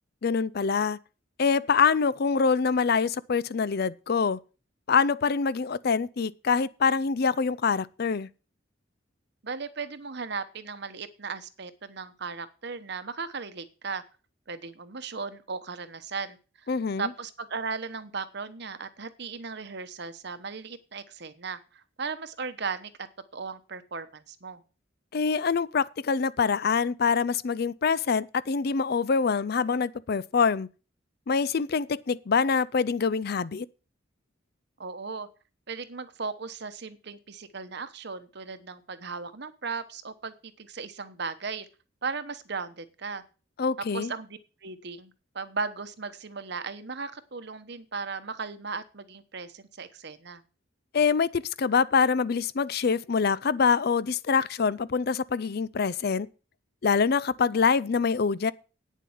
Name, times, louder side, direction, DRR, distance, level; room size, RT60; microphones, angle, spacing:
voice 1, 0.2-1.0 1.4-4.4 4.9-8.3 16.7-17.1 25.1-30.7 31.3-33.7 43.6-44.1 50.9-56.3 56.8-58.5, left 5 dB, 50° left, 0.5 m, -25 dB
voice 2, 9.4-14.0 14.5-16.7 17.0-22.9 23.3-24.6 34.8-35.3 35.7-41.7 42.0-43.2 43.9-50.4, right 4 dB, 55° right, 1.1 m, -37 dB
9.3 x 7.4 x 7.2 m
head